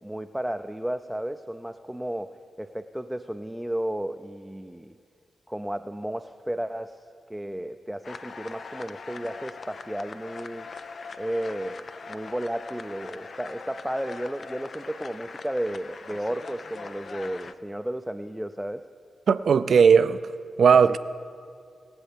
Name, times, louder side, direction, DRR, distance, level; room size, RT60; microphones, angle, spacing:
voice 1, 0.0-5.0 5.5-7.0 7.3-10.7 11.2-18.9 20.7-20.8, right 1 dB, 5° right, 0.5 m, -33 dB
sound 1, 8.0-17.5, left 4 dB, 60° left, 0.5 m, -41 dB
voice 2, 19.3-20.3 20.6-21.0, right 6 dB, 70° right, 0.4 m, -17 dB
22.5 x 7.8 x 3.4 m
supercardioid pair, 45°, 0 cm